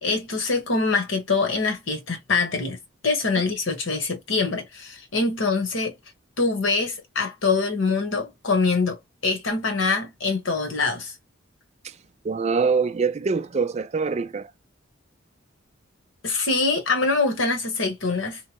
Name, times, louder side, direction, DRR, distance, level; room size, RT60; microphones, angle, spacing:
voice 1, 0.0-2.8 3.0-5.9 6.4-9.0 9.2-11.1 16.2-18.4, left 4 dB, 70° left, 1.1 m, -24 dB
voice 2, 12.2-14.5, right 5 dB, 35° right, 0.3 m, -24 dB
3.1 x 2.1 x 2.9 m
head